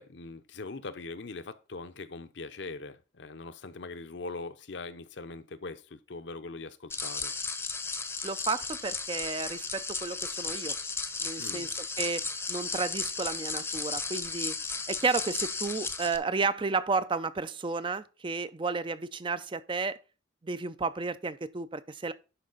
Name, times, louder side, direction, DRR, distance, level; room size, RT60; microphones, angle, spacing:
voice 1, 0.0-7.3 11.4-11.7, left 3 dB, 65° left, 0.7 m, -41 dB
sound 1, 6.9-16.2, left 4 dB, 10° left, 0.7 m, -35 dB
voice 2, 8.2-10.8 11.2-14.6 14.9-20.0 20.4-22.1, right 4 dB, 25° right, 0.4 m, -32 dB
11.0 x 4.7 x 3.9 m
head